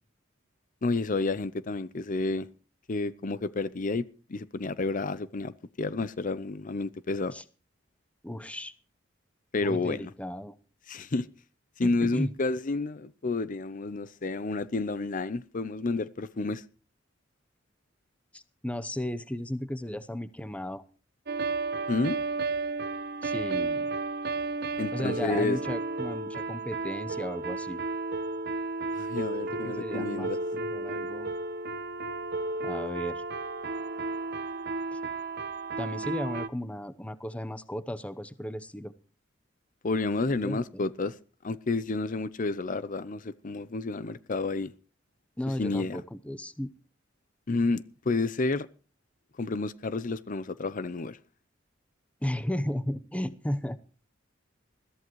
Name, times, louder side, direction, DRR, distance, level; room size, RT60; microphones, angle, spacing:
voice 1, 0.8-2.5 2.9-4.0 4.3-5.5 5.8-7.3 9.5-10.1 10.9-11.3 11.8-16.6 21.9-22.2 24.8-25.6 28.9-30.4 39.8-41.1 41.4-44.7 45.6-46.0 47.5-48.7 49.4-51.2, left 3 dB, 45° left, 0.6 m, -30 dB
voice 2, 8.2-8.7 9.6-10.5 11.8-12.3 18.3-20.8 23.2-23.9 24.9-27.8 29.5-31.3 32.6-33.2 34.9-35.0 35.8-38.9 40.4-40.8 45.4-46.7 52.2-53.8, left 1 dB, 5° left, 0.8 m, -35 dB
sound 1, 21.3-36.5, right 3 dB, 55° right, 1.0 m, -33 dB
21.5 x 14.0 x 3.1 m
head